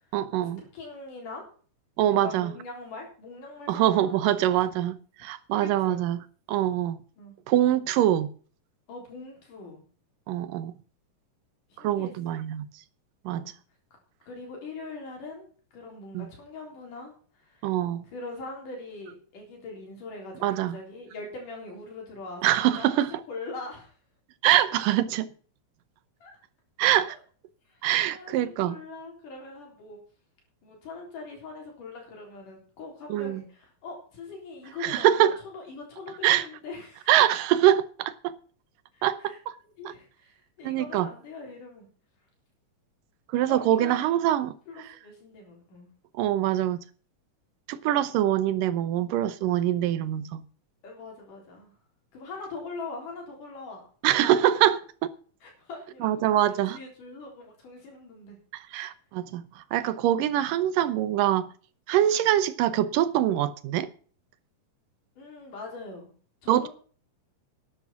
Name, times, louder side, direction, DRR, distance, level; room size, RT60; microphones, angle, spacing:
voice 1, 0.1-0.6 2.0-2.5 3.7-6.2 6.5-7.0 7.5-8.3 10.3-10.7 11.8-12.7 13.3-13.5 16.1-16.3 17.6-18.0 20.4-20.8 22.4-23.1 24.4-25.3 26.8-27.2 27.8-28.8 33.1-33.4 34.8-35.4 36.2-36.5 37.1-38.4 39.0-39.5 40.6-41.1 43.3-44.9 46.1-46.8 47.7-50.4 54.0-55.1 56.0-56.8 58.5-61.5 61.9-63.9 66.5-66.7, right 12 dB, 90° right, 2.6 m, -24 dB
voice 2, 0.7-1.5 2.0-4.6 5.8-6.0 7.2-7.4 8.9-9.8 11.7-12.1 13.3-13.5 14.3-15.5 15.7-17.7 18.1-20.5 20.7-23.0 23.3-23.9 26.2-26.3 27.7-27.8 28.1-28.3 28.6-30.0 30.6-37.1 38.9-39.4 39.8-41.9 43.5-44.1 44.7-45.9 50.8-51.7 52.1-53.8 54.1-54.2 55.4-56.1 56.4-58.4 60.1-60.2 65.2-66.1 66.4-66.7, left 3 dB, 75° left, 5.3 m, -42 dB
12.0 x 10.0 x 5.9 m
omnidirectional pair, 3.7 m